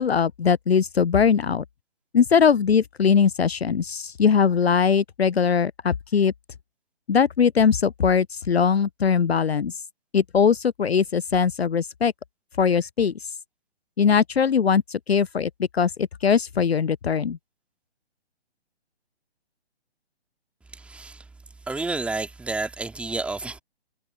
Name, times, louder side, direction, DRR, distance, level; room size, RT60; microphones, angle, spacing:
voice 1, 0.0-1.6 2.1-6.3 7.1-9.7 10.1-12.1 12.6-13.1 14.0-17.4, left 6 dB, 70° left, 0.6 m, -21 dB
voice 2, 20.7-21.2 21.7-23.6, right 3 dB, 5° right, 2.4 m, -30 dB
figure-of-eight pair, 135°, 32 cm